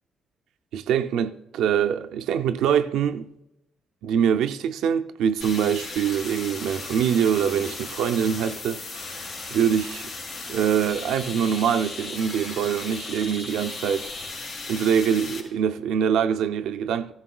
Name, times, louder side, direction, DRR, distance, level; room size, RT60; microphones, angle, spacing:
voice 1, 0.7-3.3 4.0-8.8 9.5-10.1 10.5-14.1 14.7-17.1, right 8 dB, 85° right, 0.4 m, -24 dB
sound 1, 5.4-15.4, left 3 dB, 85° left, 2.4 m, -36 dB
16.0 x 12.5 x 2.3 m
cardioid pair, 90°, 0 cm